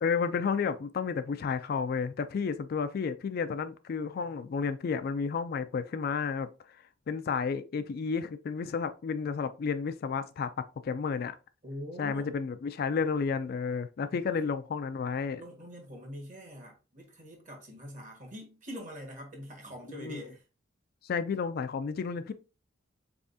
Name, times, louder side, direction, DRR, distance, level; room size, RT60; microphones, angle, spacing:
voice 1, 0.0-6.5 7.1-10.5 10.8-11.3 12.0-15.4 19.9-20.2 21.0-22.3, left 5 dB, 50° left, 0.3 m, -31 dB
voice 2, 11.6-12.3 14.1-14.4 15.4-20.4, equal, 40° right, 1.4 m, -44 dB
4.1 x 3.5 x 2.6 m
head